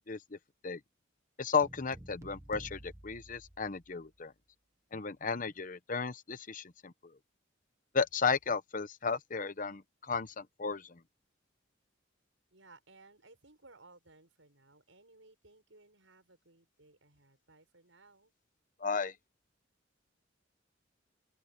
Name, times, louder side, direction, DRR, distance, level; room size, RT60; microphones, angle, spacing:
voice 1, 0.1-0.4 0.6-0.8 1.4-4.3 4.9-7.1 7.9-11.0 18.8-19.1, left 5 dB, 40° left, 0.9 m, -34 dB
sound 1, 1.6-4.2, right 1 dB, 15° right, 1.0 m, -51 dB
voice 2, 12.5-18.3, right 3 dB, 80° right, 6.4 m, -60 dB
open air
head